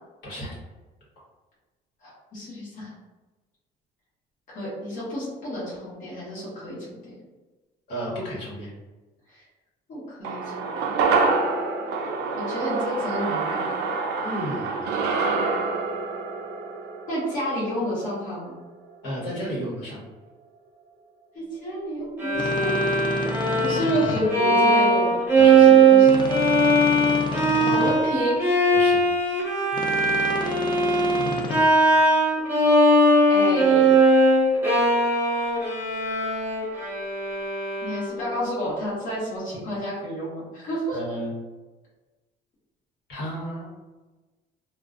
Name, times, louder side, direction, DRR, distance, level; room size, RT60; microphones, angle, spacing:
voice 1, 0.2-0.6 7.9-8.7 14.2-14.9 19.0-20.0 25.4-25.7 28.7-29.0 40.9-41.3 43.1-43.7, equal, 75° left, -7 dB, 1.1 m, -32 dB
voice 2, 2.0-2.9 4.5-6.8 9.3-9.4 9.9-11.0 12.4-13.7 17.1-18.6 21.3-26.1 27.6-28.5 33.3-33.9 37.8-41.0, equal, 50° left, -8 dB, 1.1 m, -30 dB
sound 1, 10.2-18.7 19.0-19.1, right 4 dB, 75° right, 0.4 m, -27 dB
Bowed string instrument, 22.2-38.3, right 2 dB, 10° right, 0.7 m, -20 dB
sound 2, 22.3-24.2 26.0-27.9 29.7-31.6, left 3 dB, 30° left, 0.4 m, -31 dB
2.4 x 2.2 x 2.4 m, 1.2 s
cardioid pair, 110°, 17 cm